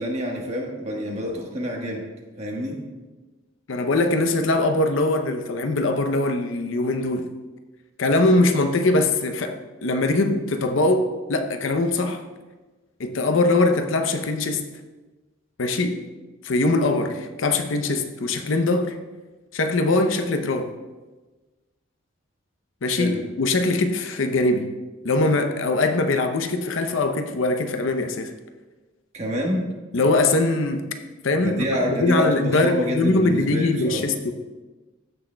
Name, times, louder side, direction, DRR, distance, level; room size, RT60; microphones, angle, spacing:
voice 1, 0.0-2.0 2.4-2.8 23.0-23.3 29.1-29.7 31.4-34.1, equal, 30° right, 1.3 m, -27 dB
voice 2, 3.7-7.3 8.0-12.2 13.0-14.7 15.6-16.0 16.4-19.0 19.5-20.7 22.8-24.7 25.0-28.3 29.9-30.9 31.2-34.3, left 2 dB, 75° left, 0.6 m, -22 dB
14.0 x 6.2 x 2.2 m
head